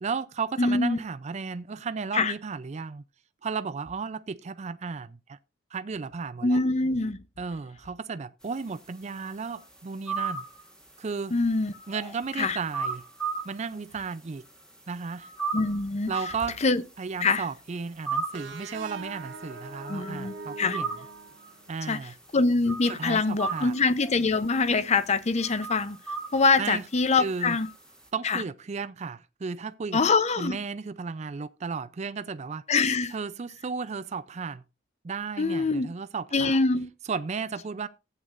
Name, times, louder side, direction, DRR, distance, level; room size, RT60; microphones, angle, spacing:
voice 1, 0.0-3.0 3.4-5.4 5.7-6.6 7.4-10.4 11.0-11.3 11.9-13.0 13.4-14.4 14.9-15.3 16.1-16.6 17.0-20.9 21.7-22.1 22.9-23.7 26.6-26.8 27.2-27.6 28.1-30.0 30.4-32.6 33.1-34.6 35.0-36.6 37.1-37.9, right 5 dB, 35° right, 0.4 m, -34 dB
voice 2, 0.6-1.0 2.1-2.3 6.4-7.2 11.3-11.7 12.4-12.6 15.5-16.1 16.6-16.8 17.2-17.4 19.9-20.8 21.9-22.0 22.3-26.0 26.3-27.7 28.2-28.4 29.9-30.6 32.7-33.1 35.4-35.9 36.3-36.9, left 3 dB, 35° left, 0.7 m, -24 dB
sound 1, 8.5-14.1 14.3-28.1, right 5 dB, 5° left, 1.7 m, -36 dB
sound 2, 18.3-21.9, right 3 dB, 80° right, 1.3 m, -42 dB
15.0 x 8.1 x 2.5 m
head